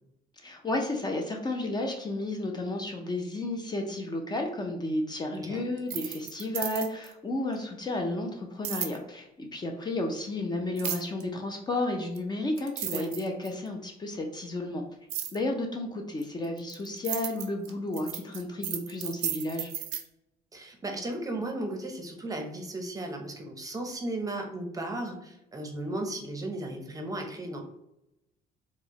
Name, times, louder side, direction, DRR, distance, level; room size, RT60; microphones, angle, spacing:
voice 1, 0.4-14.8 15.3-19.7, left 2 dB, 25° left, 2 dB, 0.5 m, -32 dB
voice 2, 5.3-5.7 12.9-13.1 20.5-27.6, right 1 dB, 20° right, 3 dB, 0.6 m, -35 dB
sound 1, 5.8-7.1 8.6-9.0 10.8-11.2 12.2-12.3 12.6-13.7 15.1-15.4 16.2-20.0, right 10 dB, 80° right, 0.5 m, -34 dB
4.3 x 2.1 x 3.0 m, 0.85 s
cardioid pair, 110°, 17 cm